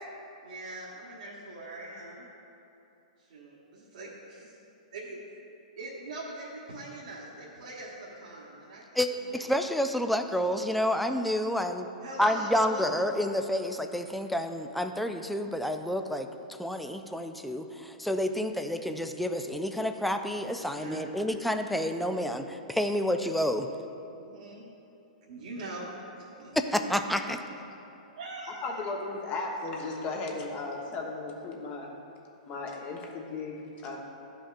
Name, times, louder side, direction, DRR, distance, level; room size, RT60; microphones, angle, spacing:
voice 1, 0.4-2.3 3.3-4.6 4.9-5.2 5.8-9.0 9.2-9.5 12.0-12.9 20.6-21.3 24.1-24.6 25.3-25.9 26.2-26.6 28.2-28.8, right 2 dB, 70° right, -6 dB, 1.3 m, -42 dB
voice 2, 8.9-11.9 12.2-23.7 26.7-27.4, equal, ahead, 6 dB, 0.3 m, -29 dB
voice 3, 28.6-31.9 32.5-34.0, left 3 dB, 30° left, 0 dB, 1.1 m, -36 dB
12.0 x 5.1 x 2.5 m, 2.9 s
hypercardioid pair, 130°, 4 cm